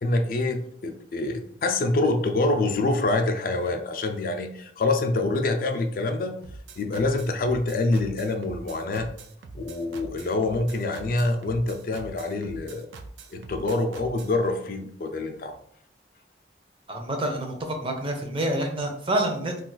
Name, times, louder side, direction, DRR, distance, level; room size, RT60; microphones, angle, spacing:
voice 1, 0.0-6.3 6.8-9.1 9.5-12.9 13.3-15.6, left 2 dB, 50° left, 6 dB, 0.3 m, -26 dB
sound 1, 6.4-14.4, right 3 dB, 90° right, 0.4 m, -43 dB
voice 2, 16.9-19.6, right 1 dB, 30° right, 4 dB, 0.5 m, -27 dB
2.3 x 2.3 x 3.8 m, 0.66 s
head